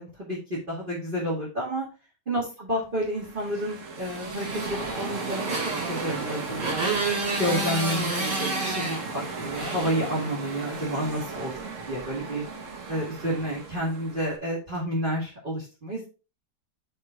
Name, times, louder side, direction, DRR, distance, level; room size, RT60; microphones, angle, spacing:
voice 1, 0.0-1.9 2.3-5.5 5.9-6.6 7.4-11.5 11.9-12.4 12.9-16.1, equal, 30° right, -5 dB, 1.9 m, -30 dB
sound 1, 3.0-14.4, right 4 dB, 50° right, 1.5 m, -37 dB
Motorcycle, 4.0-10.7, right 2 dB, 75° right, 3.1 m, -31 dB
6.6 x 4.5 x 4.3 m, 0.32 s
omnidirectional pair, 1.8 m